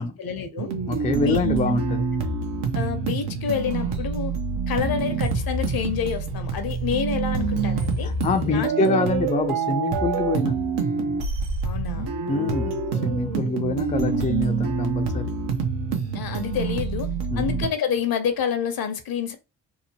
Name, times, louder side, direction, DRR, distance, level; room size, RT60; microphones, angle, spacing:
voice 1, 0.0-0.7 1.2-1.4 2.7-4.3 4.7-8.1 8.5-8.9 11.6-12.1 16.1-19.4, left 7 dB, 60° left, 0.7 m, -28 dB
sound 1, 0.6-17.7, right 4 dB, 80° right, 0.8 m, -26 dB
voice 2, 0.9-2.1 8.0-10.6 12.3-15.3 17.3-17.6, left 3 dB, 20° left, 0.4 m, -25 dB
2.8 x 2.0 x 2.8 m
supercardioid pair, 55°, 41 cm